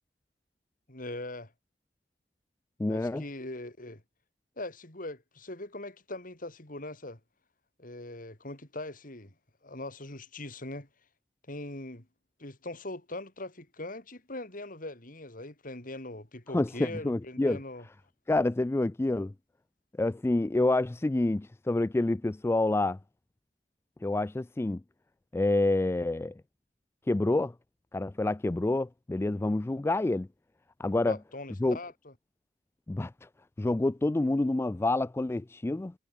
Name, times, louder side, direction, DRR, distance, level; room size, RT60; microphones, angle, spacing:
voice 1, 0.9-1.5 2.9-4.0 4.6-7.2 7.8-9.3 9.6-10.9 11.5-12.1 12.4-17.9 31.0-32.1, left 2 dB, 50° left, 4.0 m, -41 dB
voice 2, 2.8-3.2 16.5-17.6 18.3-19.3 20.0-23.0 24.0-24.8 25.3-26.3 27.1-27.5 27.9-30.3 30.8-31.2 31.6-31.8 32.9-33.1 33.6-35.9, left 2 dB, 15° left, 0.3 m, -27 dB
head